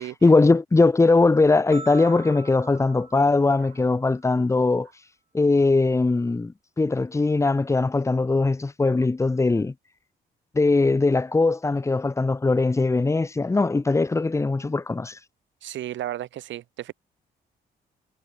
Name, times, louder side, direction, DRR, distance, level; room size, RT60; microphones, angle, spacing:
voice 1, 0.2-4.9 5.3-9.7 10.5-15.2, left 3 dB, 15° left, 0.6 m, -20 dB
sound 1, 1.7-4.1, right 3 dB, 25° right, 6.4 m, -43 dB
voice 2, 15.6-16.9, right 12 dB, 70° right, 0.9 m, -33 dB
cardioid pair, 80°, 20 cm